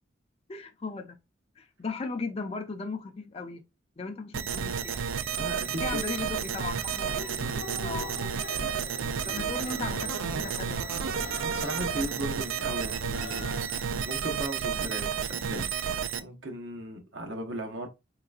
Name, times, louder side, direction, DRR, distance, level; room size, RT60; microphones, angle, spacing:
voice 1, 0.5-1.2 1.6-3.6 4.0-5.0 5.8-7.3 7.8-8.2 9.3-10.9, left 4 dB, 30° left, 0.4 m, -37 dB
sound 1, 4.3-16.2, right 7 dB, 85° right, 0.4 m, -31 dB
sound 2, 4.5-14.0, left 2 dB, 65° left, 0.7 m, -43 dB
voice 2, 5.4-6.0 7.9-8.1 11.4-13.6 14.0-17.9, right 1 dB, 70° right, 0.9 m, -37 dB
3.8 x 3.2 x 2.3 m
head